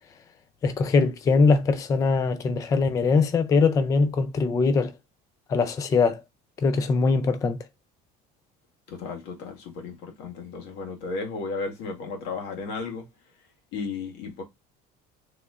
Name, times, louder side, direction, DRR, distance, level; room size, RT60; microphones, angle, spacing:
voice 1, 0.6-4.9 5.5-6.2 6.6-7.6, left 4 dB, 20° left, 0.4 m, -22 dB
voice 2, 8.9-13.1 13.7-14.4, left 4 dB, 85° left, 1.6 m, -34 dB
6.6 x 3.1 x 2.4 m
cardioid pair, 170°, 18 cm